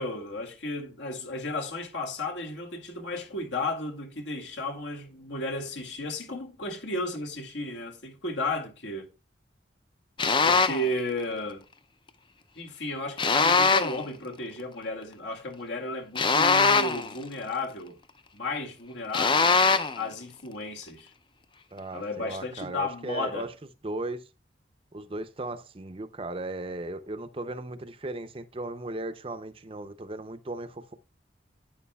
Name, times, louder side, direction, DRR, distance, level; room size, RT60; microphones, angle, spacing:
voice 1, 0.0-9.1 10.4-11.6 12.6-18.0 18.3-19.6 20.0-21.1 21.9-23.5, left 2 dB, 70° left, 2.2 m, -34 dB
sound 1, 10.2-10.9 13.2-14.0 16.2-17.1 19.1-20.0, left 4 dB, 25° left, 0.5 m, -22 dB
voice 2, 21.7-23.5 23.8-24.3 24.9-30.9, right 2 dB, 30° right, 0.6 m, -36 dB
11.0 x 9.4 x 2.3 m
head